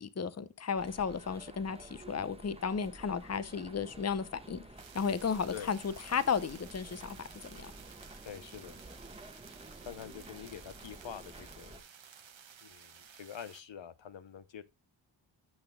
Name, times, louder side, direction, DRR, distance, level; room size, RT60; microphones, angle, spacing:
voice 1, 0.0-4.6 4.9-7.7, left 6 dB, 30° left, 0.7 m, -34 dB
sound 1, 0.8-11.8, right 2 dB, 10° right, 1.2 m, -52 dB
sound 2, 4.8-13.6, right 7 dB, 65° right, 1.1 m, -54 dB
voice 2, 8.2-8.7 9.8-11.8 12.6-14.6, left 8 dB, 65° left, 0.7 m, -46 dB
12.5 x 6.1 x 2.2 m
cardioid pair, 50°, 49 cm